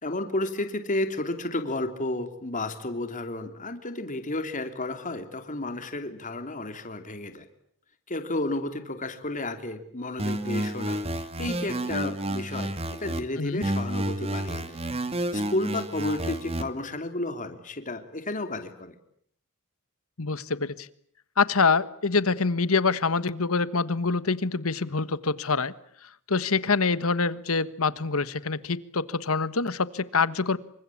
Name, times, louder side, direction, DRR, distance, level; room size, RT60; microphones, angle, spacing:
voice 1, 0.0-7.4 8.1-14.8 15.3-18.9, left 2 dB, 35° left, 7 dB, 3.1 m, -32 dB
sound 1, 10.2-13.2 13.6-16.6, right 1 dB, 30° right, 2.2 m, -30 dB
voice 2, 20.2-20.9 21.4-25.7 26.3-30.6, left 4 dB, 70° left, 16 dB, 1.4 m, -25 dB
28.0 x 25.0 x 8.6 m, 0.66 s
head